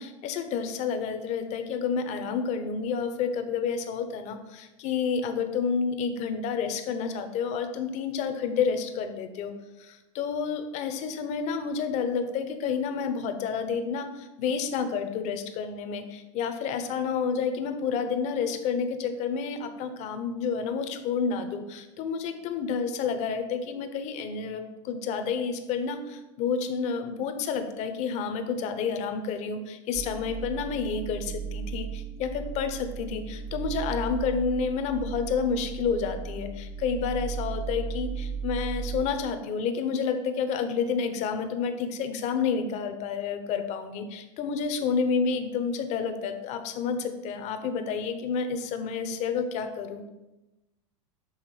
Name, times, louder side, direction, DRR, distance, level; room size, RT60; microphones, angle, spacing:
voice 1, 0.0-9.5 9.8-50.0, left 6 dB, 45° left, 8 dB, 0.8 m, -30 dB
sound 1, 29.9-39.0, right 6 dB, 15° right, 0.6 m, -36 dB
7.3 x 3.4 x 4.8 m, 1.0 s
hypercardioid pair, 105°, 16 cm